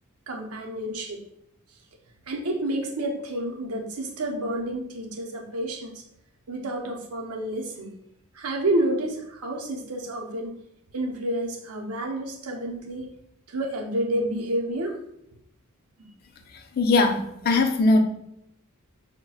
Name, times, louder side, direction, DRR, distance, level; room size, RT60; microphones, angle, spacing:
voice 1, 0.3-1.2 2.3-6.0 6.5-7.9 8.3-10.6 10.9-13.1 13.5-15.0 16.0-16.1, right 1 dB, 90° right, 2 dB, 0.7 m, -29 dB
voice 2, 16.8-18.0, left 2 dB, 45° left, 4 dB, 0.4 m, -20 dB
5.5 x 2.1 x 2.3 m, 0.77 s
head